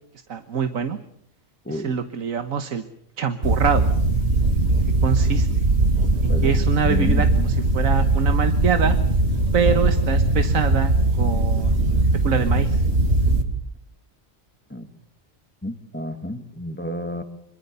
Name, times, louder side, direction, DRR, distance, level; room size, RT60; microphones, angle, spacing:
voice 1, 0.3-1.0 1.7-2.8 3.2-3.9 4.7-5.6 6.2-9.0 9.5-12.8, right 6 dB, 85° right, 9 dB, 1.6 m, -25 dB
sound 1, 3.4-13.4, right 2 dB, 55° right, 2.8 m, -20 dB
voice 2, 6.3-7.3 9.6-9.9 14.7-14.9 15.6-17.2, left 1 dB, 10° left, 7 dB, 2.4 m, -31 dB
26.0 x 23.5 x 6.9 m, 0.71 s
omnidirectional pair, 1.4 m